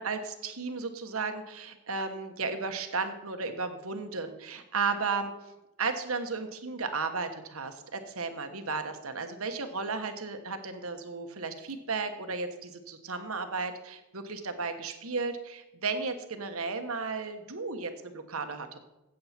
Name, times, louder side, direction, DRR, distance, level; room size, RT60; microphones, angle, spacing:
voice 1, 0.0-5.3 5.8-18.8, right 4 dB, 75° right, 7 dB, 1.2 m, -34 dB
14.0 x 8.6 x 4.4 m, 1.0 s
head